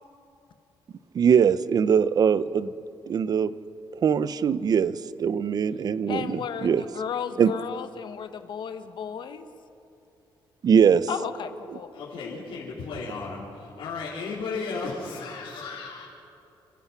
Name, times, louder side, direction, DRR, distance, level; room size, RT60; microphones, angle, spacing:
voice 1, 1.1-2.7 3.1-3.5 3.9-4.9 5.2-6.8 7.4-7.5 10.6-11.1 11.7-11.8, right 7 dB, 50° right, 15 dB, 0.7 m, -21 dB
voice 2, 6.1-9.4 11.1-11.9, left 7 dB, 60° left, 9 dB, 1.3 m, -34 dB
voice 3, 11.9-16.1, left 4 dB, 80° left, -7 dB, 4.1 m, -34 dB
28.5 x 15.5 x 5.9 m, 2.8 s
cardioid pair, 125°, 9 cm